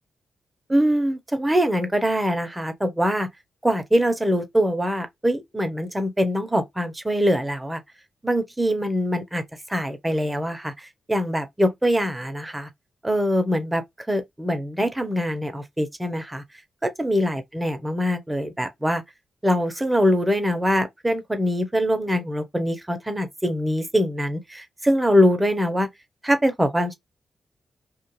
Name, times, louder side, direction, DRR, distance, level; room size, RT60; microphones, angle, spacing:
voice 1, 0.7-3.3 3.6-7.8 8.2-9.4 9.7-12.7 13.0-13.8 14.1-16.4 16.8-19.0 19.4-25.9 26.2-26.9, equal, 15° right, 0.7 m, -23 dB
2.4 x 2.3 x 3.0 m
supercardioid pair, 50°, 0 cm